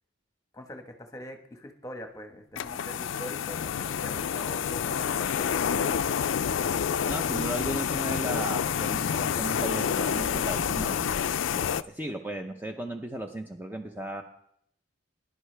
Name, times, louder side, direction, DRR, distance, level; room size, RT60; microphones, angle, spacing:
voice 1, 0.5-6.1, left 1 dB, 15° left, 4 dB, 1.3 m, -43 dB
sound 1, 2.6-11.8, left 7 dB, 70° left, 0.4 m, -28 dB
voice 2, 7.0-11.1 11.5-14.2, right 1 dB, 10° right, 3 dB, 0.7 m, -35 dB
20.5 x 11.0 x 3.4 m, 0.71 s
head